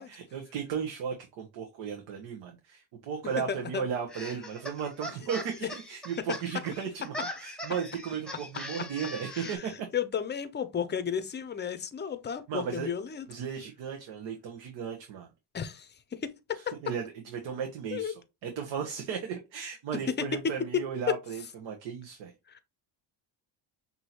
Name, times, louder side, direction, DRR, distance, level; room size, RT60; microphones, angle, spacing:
voice 1, 0.0-7.1 7.4-9.7 12.5-12.9 13.3-15.3 16.5-22.3, right 7 dB, 75° right, 1.1 m, -35 dB
voice 2, 3.5-3.8 9.3-13.3 15.5-16.8 17.9-18.1 20.1-20.3 21.1-21.2 22.5-22.6, left 8 dB, 25° left, 0.5 m, -33 dB
sound 1, 4.1-9.6, equal, ahead, 1.0 m, -41 dB
6.0 x 2.8 x 2.8 m
cardioid pair, 110°, 44 cm